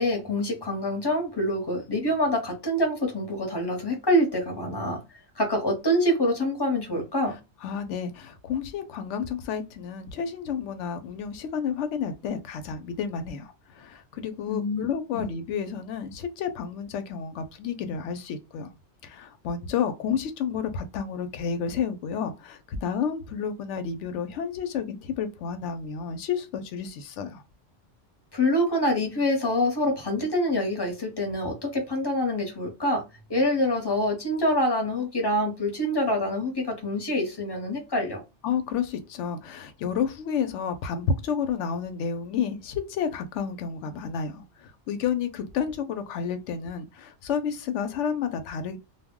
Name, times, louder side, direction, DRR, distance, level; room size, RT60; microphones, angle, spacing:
voice 1, 0.0-5.0 5.4-7.3 14.5-14.8 15.1-15.3 28.3-33.0 33.3-38.2, left 1 dB, 25° left, 0.7 m, -26 dB
voice 2, 7.6-18.7 19.0-27.4 38.4-48.8, left 7 dB, 80° left, 0.9 m, -31 dB
2.2 x 2.1 x 3.5 m
omnidirectional pair, 1.2 m